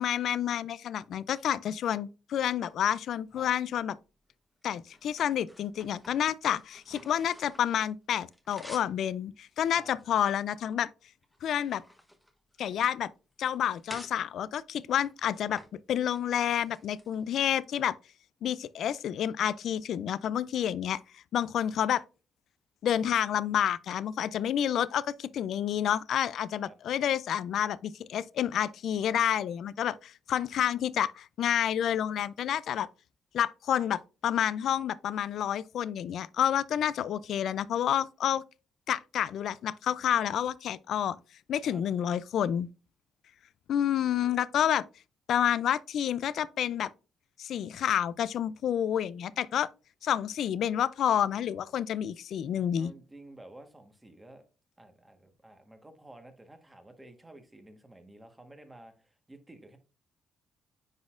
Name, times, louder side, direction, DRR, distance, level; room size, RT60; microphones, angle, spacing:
voice 1, 0.0-3.9 4.6-10.9 11.4-11.8 12.6-13.1 13.4-15.6 15.9-17.9 18.4-21.0 21.3-22.0 22.8-32.9 33.3-38.4 38.9-41.2 41.5-42.7 43.7-44.8 45.3-46.9 47.4-49.7 50.0-52.9, left 10 dB, 70° left, 0.3 m, -29 dB
sound 1, 2.7-3.7 4.3-7.8 8.1-9.0 9.5-10.8 11.2-12.9 13.3-14.2 14.8-15.7 16.0-16.2 16.6-17.6, equal, 5° left, 1.0 m, -52 dB
voice 2, 52.8-54.4 54.8-59.8, right 1 dB, 15° right, 1.3 m, -52 dB
9.6 x 4.1 x 2.4 m
cardioid pair, 90°, 0 cm